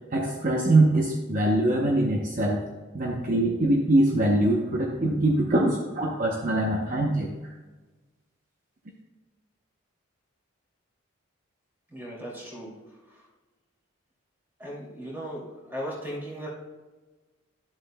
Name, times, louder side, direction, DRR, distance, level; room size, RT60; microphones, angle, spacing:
voice 1, 0.1-2.6 2.9-7.3, right 1 dB, 40° right, -1 dB, 0.7 m, -23 dB
voice 2, 11.9-12.7 14.6-16.5, equal, 10° right, -5 dB, 2.4 m, -37 dB
11.5 x 7.5 x 2.2 m, 1.3 s
head